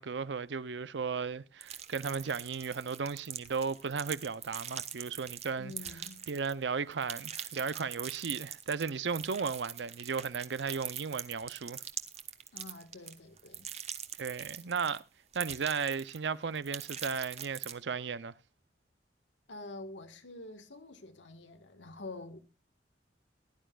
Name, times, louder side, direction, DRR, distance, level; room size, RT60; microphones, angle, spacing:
voice 1, 0.0-5.7 6.3-11.8 14.2-15.0 15.3-18.3, right 5 dB, 70° right, 0.6 m, -35 dB
sound 1, 1.6-6.6 6.9-15.0 15.3-16.3 16.5-17.7, right 9 dB, 35° right, 1.2 m, -42 dB
voice 2, 5.6-6.2 12.5-13.7 19.5-22.4, left 2 dB, 85° left, 1.7 m, -47 dB
20.0 x 11.5 x 2.4 m
head